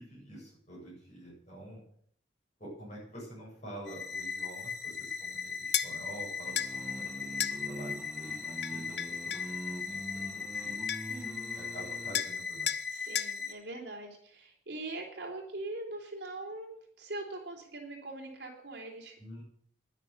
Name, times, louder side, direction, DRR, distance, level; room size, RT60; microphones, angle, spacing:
voice 1, 0.0-1.8 2.6-10.8 11.5-12.7 19.2-19.4, right 1 dB, 40° left, -4 dB, 7.8 m, -48 dB
sound 1, 3.9-13.5, left 5 dB, 80° left, 3.3 m, -38 dB
sound 2, 5.7-5.9 6.6-6.7 7.4-7.6 8.6-9.5 10.5-10.6 10.9-11.2 12.1-12.4 12.7-12.8 13.2-13.3, left 10 dB, 65° left, 0.7 m, -32 dB
sound 3, 6.5-12.3, equal, 5° right, 1.3 m, -44 dB
voice 2, 11.1-11.6 12.9-19.2, right 2 dB, 65° right, 0 dB, 3.7 m, -42 dB
10.5 x 10.5 x 8.1 m, 0.64 s
head